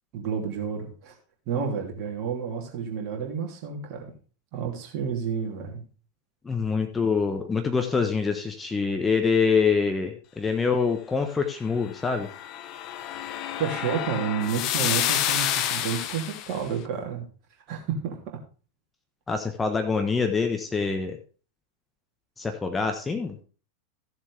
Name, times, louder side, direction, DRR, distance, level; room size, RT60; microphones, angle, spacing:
voice 1, 0.1-1.1 1.5-4.1 4.5-5.8 13.6-17.3 17.7-18.4, right 6 dB, 40° right, 1 dB, 3.0 m, -30 dB
voice 2, 6.4-12.3 19.3-21.2 22.4-23.4, left 5 dB, 15° left, 5 dB, 1.1 m, -25 dB
sound 1, 12.0-16.6, left 11 dB, 40° left, 0.8 m, -29 dB
15.0 x 7.3 x 3.4 m, 0.39 s
figure-of-eight pair, 90°, 0 cm